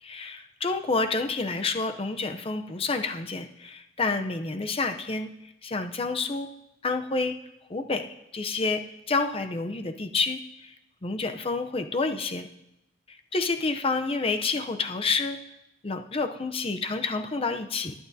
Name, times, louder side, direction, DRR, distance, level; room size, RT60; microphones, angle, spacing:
voice 1, 0.0-5.3 5.6-6.5 6.8-7.4 7.7-10.7 11.0-12.5 13.1-15.4 15.8-17.9, left 3 dB, 30° left, 7 dB, 0.6 m, -29 dB
20.0 x 8.6 x 2.7 m, 0.88 s
head